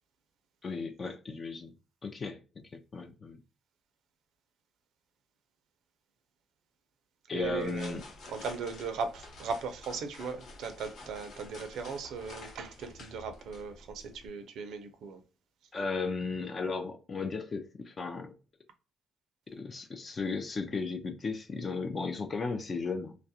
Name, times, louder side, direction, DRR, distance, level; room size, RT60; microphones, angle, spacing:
voice 1, 0.6-1.7 2.0-2.4 2.7-3.4 7.3-8.0 15.7-18.3 19.5-23.2, left 4 dB, 40° left, 0.4 m, -35 dB
voice 2, 7.3-8.0 8.3-15.2, right 5 dB, 80° right, 0.4 m, -38 dB
sound 1, 7.4-14.3, left 2 dB, 70° left, 0.8 m, -50 dB
2.3 x 2.0 x 2.7 m
cardioid pair, 90°, 0 cm